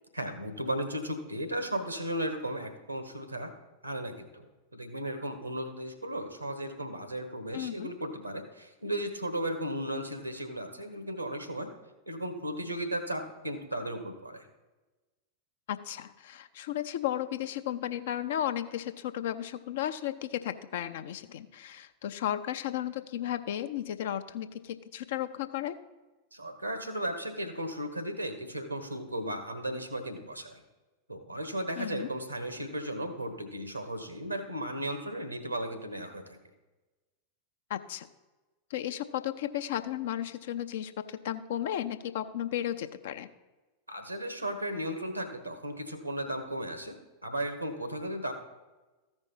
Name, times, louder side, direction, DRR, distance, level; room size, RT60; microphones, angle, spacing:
voice 1, 0.1-3.5 3.8-11.7 12.1-14.5 26.3-30.6 31.1-36.4 43.9-46.9 47.2-48.3, right 1 dB, 85° right, 8 dB, 1.3 m, -35 dB
voice 2, 7.5-7.9 15.7-25.7 31.8-32.1 37.7-38.1 38.7-43.3, left 11 dB, 55° left, 10 dB, 0.6 m, -34 dB
14.0 x 5.3 x 5.4 m, 1.2 s
figure-of-eight pair, 90°, 0 cm